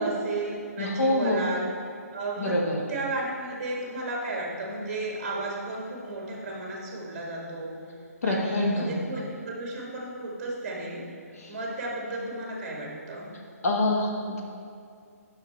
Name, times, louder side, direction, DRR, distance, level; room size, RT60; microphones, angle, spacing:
voice 1, 0.0-1.6 2.1-2.6 2.9-7.8 8.2-11.1 11.5-13.3, right 2 dB, 30° right, -2 dB, 1.7 m, -33 dB
voice 2, 0.8-1.5 2.4-2.8 8.2-8.9 11.4-11.5 13.6-14.4, left 1 dB, 65° left, 0 dB, 1.3 m, -25 dB
6.7 x 5.8 x 4.4 m, 2.4 s
hypercardioid pair, 160°, 9 cm